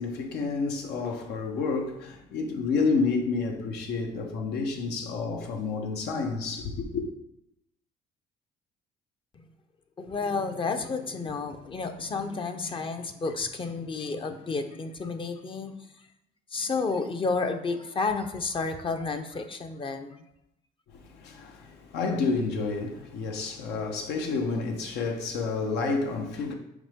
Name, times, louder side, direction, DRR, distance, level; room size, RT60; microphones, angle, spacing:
voice 1, 0.0-7.0 20.9-26.5, left 4 dB, 80° left, 1.2 m, -29 dB
voice 2, 10.0-15.7 16.5-20.2, left 4 dB, 30° left, 0.7 m, -31 dB
7.1 x 5.0 x 3.6 m
cardioid pair, 110°, 17 cm